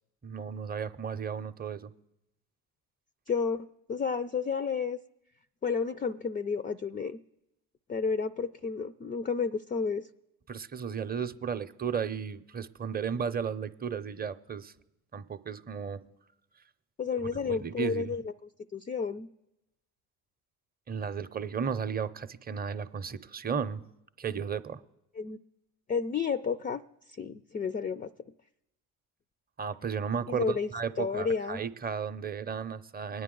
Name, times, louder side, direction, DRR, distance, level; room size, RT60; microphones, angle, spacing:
voice 1, 0.2-1.9 10.5-14.7 15.1-16.1 17.4-18.1 20.9-23.8 24.2-24.8 29.6-33.2, right 6 dB, 20° right, 11 dB, 0.6 m, -34 dB
voice 2, 3.3-5.0 5.6-7.2 7.9-10.0 17.0-18.3 18.7-19.3 25.2-25.4 25.9-26.8 27.2-28.1 30.3-30.7 31.0-31.6, left 5 dB, 20° left, 13 dB, 0.4 m, -31 dB
23.5 x 9.5 x 3.8 m, 0.89 s
hypercardioid pair, 65°, 44 cm